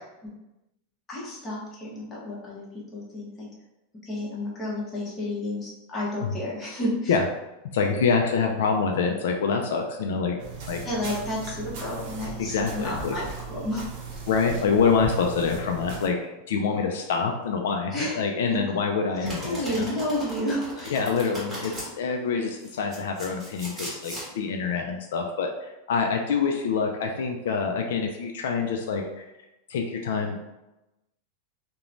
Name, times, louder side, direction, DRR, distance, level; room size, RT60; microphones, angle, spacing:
voice 1, 1.1-3.5 4.0-7.2 10.8-13.8 17.9-18.2 19.2-21.0, left 1 dB, 20° left, -6 dB, 0.9 m, -31 dB
voice 2, 7.7-10.4 10.7-10.8 12.4-13.1 14.3-16.2 16.5-19.9 20.9-29.3 29.7-30.4, left 5 dB, 80° left, 3 dB, 0.3 m, -26 dB
sound 1, 10.4-16.1, right 5 dB, 60° right, 0.6 m, -38 dB
Domestic sounds home sounds, 19.2-21.9 22.6-24.3, equal, 15° right, 1.3 m, -37 dB
3.0 x 2.1 x 2.5 m, 0.98 s
supercardioid pair, 145°, 0 cm